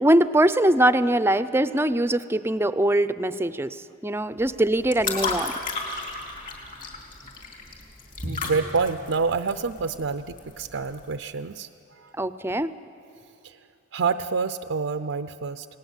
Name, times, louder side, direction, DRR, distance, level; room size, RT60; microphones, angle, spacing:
voice 1, 0.0-3.8 4.0-5.5 12.2-12.7, right 1 dB, 10° right, 13 dB, 0.5 m, -22 dB
sound 1, 4.4-11.1, left 3 dB, 45° left, 3.9 m, -34 dB
voice 2, 8.2-12.1 13.4-13.6 13.9-15.7, right 5 dB, 80° right, 9 dB, 0.6 m, -28 dB
29.0 x 19.0 x 8.2 m, 2.7 s
head